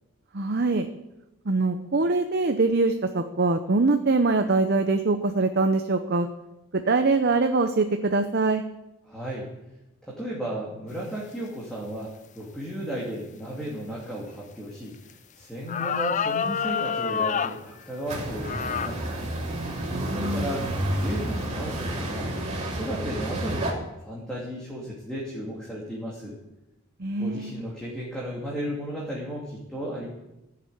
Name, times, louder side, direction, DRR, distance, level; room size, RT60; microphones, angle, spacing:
voice 1, 0.3-0.9 1.5-6.3 6.7-8.6 19.9-20.5 27.0-27.5, right 3 dB, 45° right, 7 dB, 0.7 m, -23 dB
voice 2, 9.1-9.5 10.0-12.1 12.3-19.2 20.0-20.7 21.0-22.3 22.6-23.7 24.0-26.4 27.2-30.1, equal, 5° left, -5 dB, 2.5 m, -34 dB
sound 1, 15.1-15.2 15.7-17.6 18.4-19.0 19.6-19.7 20.4-20.7, left 7 dB, 35° left, 0.4 m, -27 dB
sound 2, 18.1-23.7, right 1 dB, 30° right, 3.3 m, -30 dB
15.5 x 7.6 x 9.3 m, 0.95 s
head